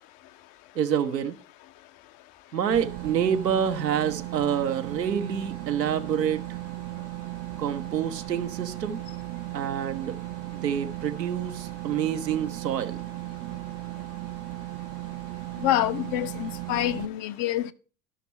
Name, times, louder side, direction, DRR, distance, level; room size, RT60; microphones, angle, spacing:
voice 1, 0.7-1.4 2.5-6.4 7.6-9.0 9.5-10.2 10.5-13.0, right 8 dB, 80° right, 1.0 m, -27 dB
sound 1, 2.7-17.1, right 17 dB, 30° right, 0.5 m, -36 dB
voice 2, 15.6-17.7, left 13 dB, 45° left, 0.8 m, -26 dB
12.5 x 6.0 x 4.1 m
figure-of-eight pair, 65°, 49 cm